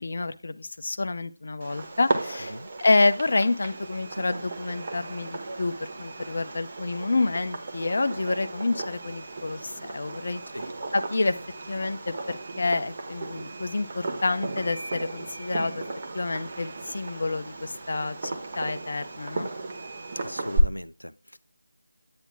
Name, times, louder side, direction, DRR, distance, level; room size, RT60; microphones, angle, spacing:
voice 1, 0.0-10.4 10.9-11.4 11.7-15.8 16.1-19.5, left 3 dB, 45° left, 0.8 m, -28 dB
Fireworks, 1.6-20.6, right 2 dB, 30° right, 1.3 m, -35 dB
voice 2, 20.1-21.4, equal, 90° left, 0.4 m, -38 dB
9.5 x 9.0 x 2.2 m
figure-of-eight pair, 165°, 0 cm